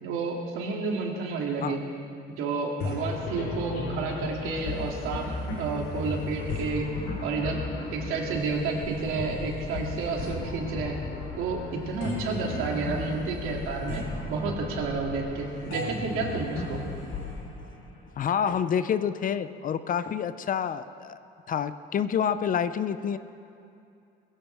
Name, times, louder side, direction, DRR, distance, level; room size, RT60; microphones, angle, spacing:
voice 1, 0.0-1.8 2.3-5.2 5.6-6.9 7.2-7.6 7.9-11.0 11.4-16.8, right 4 dB, 80° right, -1 dB, 2.6 m, -30 dB
sound 1, 2.8-18.4, left 2 dB, 75° left, 4.1 m, -35 dB
voice 2, 18.2-21.2 21.5-23.2, left 8 dB, 40° left, 13 dB, 0.6 m, -28 dB
21.0 x 15.5 x 3.5 m, 2.6 s
cardioid pair, 120°, 21 cm